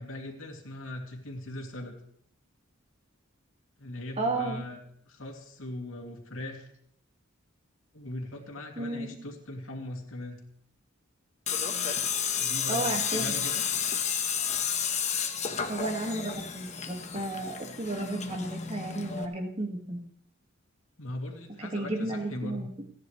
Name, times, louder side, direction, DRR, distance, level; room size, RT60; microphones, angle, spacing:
voice 1, 0.0-2.0 3.8-4.8 5.1-6.7 7.9-10.4 12.4-13.6 21.0-22.7, left 1 dB, 70° left, 1 dB, 2.9 m, -39 dB
voice 2, 4.2-4.6 8.8-9.1 12.7-13.3 15.7-20.0 21.6-22.8, right 2 dB, 30° right, 2 dB, 2.0 m, -33 dB
Tools, 11.5-19.2, left 7 dB, 35° left, 1.3 m, -31 dB
29.5 x 10.5 x 3.3 m, 0.64 s
head